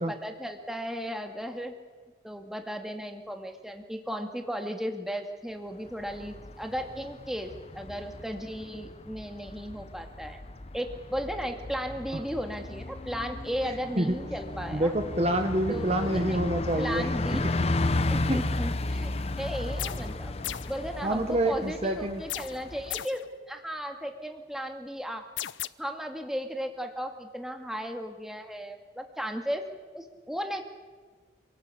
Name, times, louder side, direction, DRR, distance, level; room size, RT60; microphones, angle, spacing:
voice 1, 0.0-1.7 2.2-10.4 10.7-14.9 15.7-16.4 16.8-17.5 18.1-20.3 20.7-25.2 25.8-29.7 29.9-30.6, equal, ahead, 4 dB, 2.1 m, -35 dB
Bus, 5.9-23.0, left 2 dB, 35° left, 0.9 m, -34 dB
voice 2, 14.7-17.1 18.2-18.4 21.0-22.2, right 1 dB, 35° right, 6 dB, 1.3 m, -27 dB
sound 1, 19.8-20.2 20.4-20.8 22.3-23.3 25.4-25.7, left 13 dB, 90° left, 0.7 m, -36 dB
27.0 x 18.5 x 8.5 m, 1.4 s
head